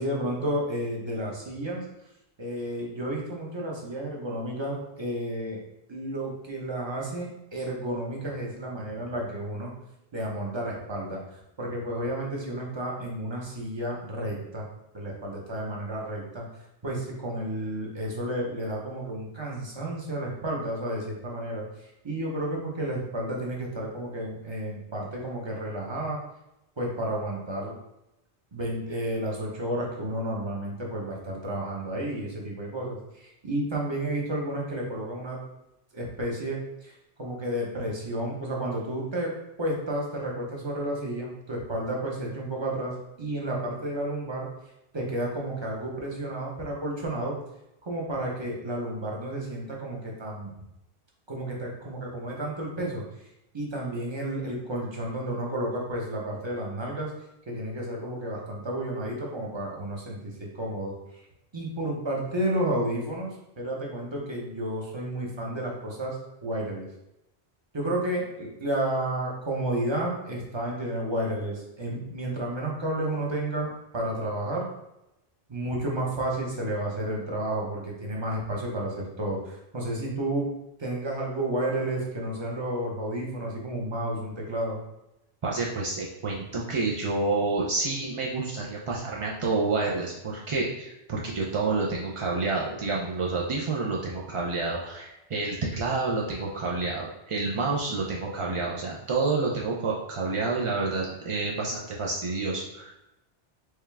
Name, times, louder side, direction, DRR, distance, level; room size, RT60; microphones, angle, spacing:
voice 1, 0.0-1.8 2.4-5.6 5.9-9.7 10.1-14.7 14.9-16.4 16.8-26.2 26.8-27.7 28.5-35.4 35.9-39.3 39.6-44.5 44.9-47.4 47.8-50.5 51.3-53.0 53.5-57.1 57.5-60.9 61.5-66.9 67.7-74.7 75.5-80.5 80.8-84.8, right 1 dB, 30° right, -2 dB, 0.8 m, -31 dB
voice 2, 85.4-102.9, right 3 dB, 45° right, -3 dB, 0.4 m, -29 dB
4.6 x 2.3 x 3.3 m, 0.90 s
omnidirectional pair, 1.1 m